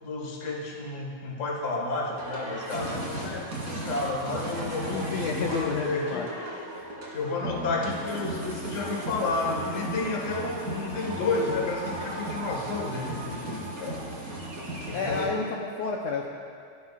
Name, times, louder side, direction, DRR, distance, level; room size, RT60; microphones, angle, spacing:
voice 1, 0.0-6.6 7.1-14.0 14.9-15.4, left 3 dB, 40° left, -1 dB, 1.1 m, -31 dB
sound 1, 2.2-15.3, right 1 dB, 25° right, 2.6 m, -35 dB
voice 2, 4.9-6.3 14.9-16.3, left 4 dB, 85° left, -1 dB, 1.5 m, -30 dB
29.5 x 11.5 x 2.4 m, 2.3 s
omnidirectional pair, 4.2 m